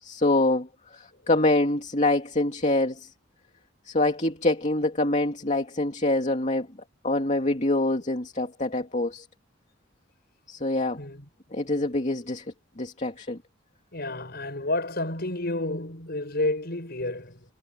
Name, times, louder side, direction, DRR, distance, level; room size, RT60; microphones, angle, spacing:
voice 1, 0.0-3.1 3.9-6.7 7.0-9.3 10.5-11.0 11.5-12.4 12.8-13.4, left 2 dB, 35° left, 2.5 m, -25 dB
voice 2, 11.0-11.3 13.1-13.2 13.9-17.4, left 2 dB, 50° left, 6.9 m, -30 dB
head